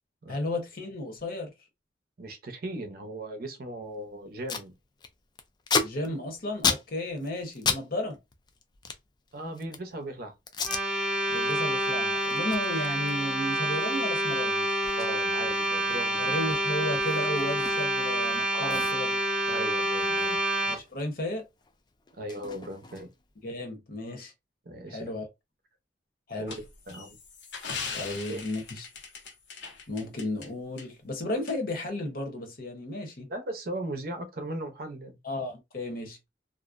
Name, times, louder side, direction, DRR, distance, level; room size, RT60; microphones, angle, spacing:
voice 1, 0.3-1.5 5.8-8.2 11.3-14.6 16.2-19.2 19.5-19.7 20.7-21.4 23.4-24.3 24.9-25.3 26.3-26.5 27.9-28.9 29.9-33.3 35.2-36.2, left 1 dB, 55° left, 0.8 m, -34 dB
voice 2, 2.2-4.7 9.3-10.3 15.0-16.5 18.5-18.9 19.5-20.4 22.1-23.1 24.7-25.1 26.4-27.2 28.0-28.4 33.3-35.2, right 1 dB, 60° right, 0.6 m, -38 dB
Packing tape duct tape, 3.9-4.0 4.2-4.7 5.0-9.9 10.5-10.8 11.3-11.5 11.9-18.1 18.3-18.4 18.7-21.1 21.3-23.3, left 5 dB, 25° left, 0.3 m, -34 dB
sound 1, 10.6-20.8, right 1 dB, 5° right, 0.9 m, -28 dB
sound 2, 26.5-30.5 30.8-30.9 31.5-31.6, left 5 dB, 90° left, 0.7 m, -39 dB
2.5 x 2.0 x 2.4 m
head